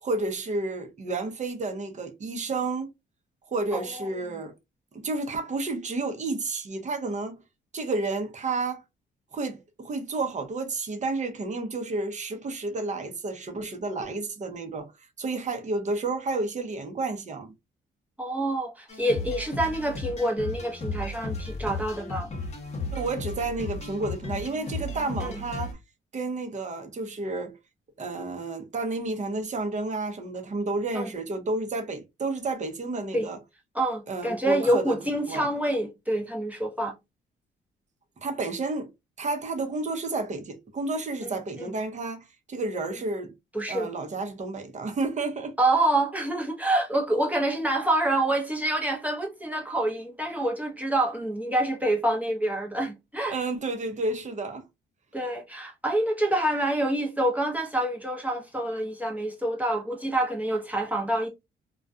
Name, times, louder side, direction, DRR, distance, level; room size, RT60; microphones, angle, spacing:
voice 1, 0.0-2.9 3.5-4.5 4.9-7.4 7.7-8.8 9.3-14.9 15.2-17.5 22.9-25.8 26.1-27.5 28.0-33.4 34.1-35.0 35.2-35.5 38.2-38.9 39.2-43.3 43.7-45.5 53.3-54.6, right 3 dB, 35° right, 0.8 m, -31 dB
voice 2, 3.7-4.1 18.2-22.3 25.2-25.4 30.9-31.1 33.1-33.3 33.7-36.9 41.2-41.7 43.5-43.9 45.6-53.4 55.1-61.3, right 1 dB, 10° right, 0.8 m, -27 dB
sound 1, 18.9-25.7, left 2 dB, 35° left, 0.9 m, -35 dB
2.3 x 2.2 x 2.6 m
cardioid pair, 90°, 20 cm